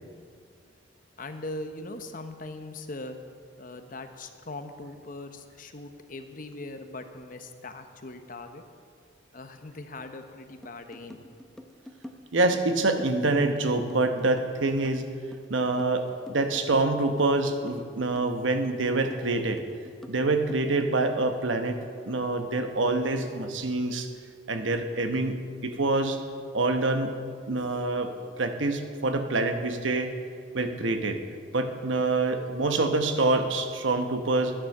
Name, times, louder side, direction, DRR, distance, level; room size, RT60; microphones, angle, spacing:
voice 1, 1.2-3.2 3.6-8.6 9.3-11.2, left 2 dB, 45° left, 7 dB, 0.9 m, -40 dB
sound 1, 10.6-21.1, equal, ahead, 0.6 m, -46 dB
voice 2, 12.3-15.1 15.5-19.6 20.1-21.8 22.0-24.1 24.5-26.2 26.5-27.2 27.5-28.1 28.4-30.1 30.5-31.2 31.5-34.5, right 2 dB, 85° right, 7 dB, 1.0 m, -26 dB
11.5 x 10.0 x 6.6 m, 2.1 s
head